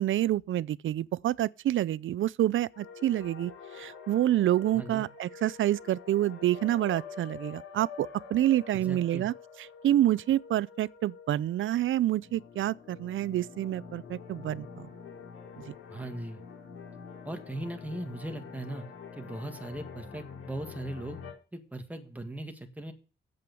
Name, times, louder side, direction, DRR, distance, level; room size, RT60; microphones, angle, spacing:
voice 1, 0.0-3.5 3.8-9.3 9.8-14.9 15.7-15.8, right 13 dB, 70° right, 0.4 m, -28 dB
sound 1, 2.7-21.3, left 6 dB, 85° left, 3.9 m, -46 dB
voice 2, 4.7-5.1 8.7-9.3 15.9-16.4 17.2-18.8 19.1-21.2 21.5-22.9, right 1 dB, 5° right, 1.8 m, -39 dB
8.7 x 7.8 x 6.9 m
wide cardioid pair, 135°, 21 cm